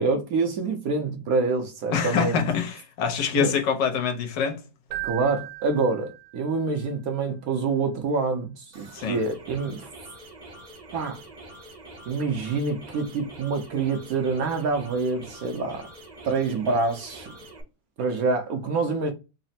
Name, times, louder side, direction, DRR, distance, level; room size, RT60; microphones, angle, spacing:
voice 1, 0.0-2.4 3.3-3.5 5.0-9.9 10.9-11.2 12.1-15.9 16.2-17.3 18.0-19.1, right 4 dB, 65° right, 1.0 m, -26 dB
voice 2, 1.9-4.6 8.9-9.2, left 7 dB, 75° left, 1.4 m, -25 dB
Keyboard (musical), 4.9-6.7, right 15 dB, 80° right, 1.4 m, -37 dB
sound 1, 8.7-17.6, right 1 dB, 40° right, 0.6 m, -45 dB
4.1 x 2.0 x 4.0 m
omnidirectional pair, 2.0 m